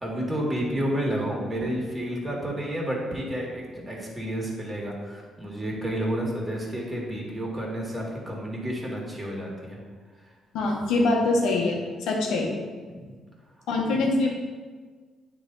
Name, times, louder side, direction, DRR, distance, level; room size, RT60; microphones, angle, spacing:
voice 1, 0.0-9.8 12.9-13.1, equal, 15° right, -3 dB, 2.0 m, -30 dB
voice 2, 10.5-12.6 13.7-14.3, left 2 dB, 90° left, 0 dB, 1.1 m, -24 dB
9.3 x 3.4 x 3.9 m, 1.5 s
cardioid pair, 90°, 0 cm